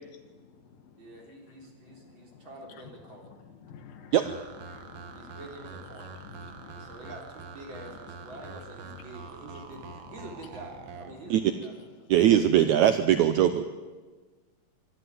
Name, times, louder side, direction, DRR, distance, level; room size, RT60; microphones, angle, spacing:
voice 1, 1.0-3.4 5.1-6.2 6.8-11.7, right 1 dB, 30° right, 0 dB, 4.2 m, -46 dB
voice 2, 1.9-2.5 3.6-4.1 4.7-5.4 6.2-7.0, left 7 dB, 75° left, 9 dB, 3.0 m, -50 dB
sound 1, 4.2-11.1, right 5 dB, 60° right, 1.6 m, -45 dB
voice 3, 12.1-13.6, right 11 dB, 85° right, 10 dB, 1.6 m, -21 dB
24.5 x 12.5 x 9.3 m, 1.4 s
omnidirectional pair, 4.3 m